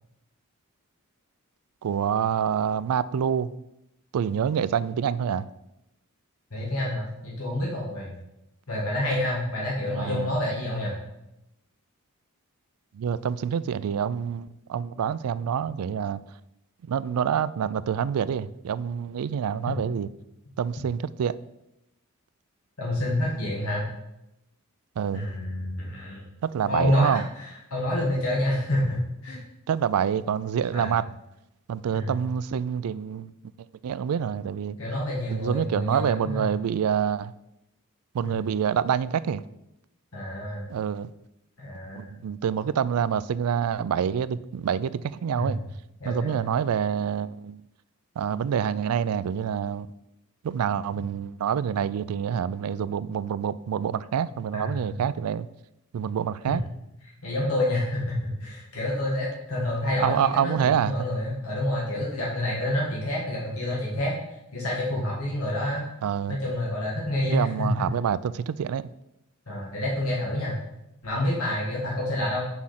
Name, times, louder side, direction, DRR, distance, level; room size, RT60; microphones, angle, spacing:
voice 1, 1.8-3.5 4.1-5.5 9.9-10.3 12.9-16.2 16.9-20.1 20.6-21.4 25.0-25.2 26.4-27.3 29.7-31.0 31.7-33.3 33.8-34.8 35.3-37.3 38.1-39.4 40.7-41.1 41.9-45.6 46.0-47.6 48.2-49.9 50.4-55.5 55.9-56.6 60.0-61.1 66.0-66.4 67.3-68.9, right 8 dB, 80° right, 0.3 m, -27 dB
voice 2, 6.5-8.1 8.7-11.0 22.8-23.9 25.1-26.3 26.6-29.4 30.7-31.0 31.9-32.1 34.8-36.5 38.2-38.5 40.1-40.7 41.6-42.1 45.4-45.6 46.0-46.5 54.5-54.9 56.5-56.6 57.2-64.1 64.5-65.8 66.3-67.9 69.5-70.6 71.0-72.5, left 1 dB, 75° left, 1.8 m, -28 dB
6.2 x 4.9 x 5.8 m
head